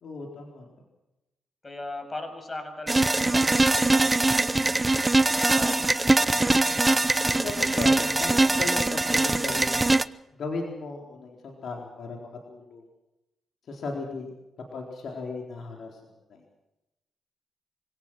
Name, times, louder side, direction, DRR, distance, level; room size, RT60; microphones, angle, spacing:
voice 1, 0.0-0.7 7.4-9.9 10.3-12.8 13.7-14.3 14.7-16.0 16.3-16.4, left 3 dB, 65° left, 1 dB, 4.1 m, -36 dB
voice 2, 1.6-4.9 5.4-6.0, left 2 dB, 30° left, 6 dB, 7.1 m, -39 dB
sound 1, 2.9-10.0, right 2 dB, 20° right, 0.9 m, -22 dB
25.5 x 18.0 x 6.3 m, 0.94 s
supercardioid pair, 45°, 0 cm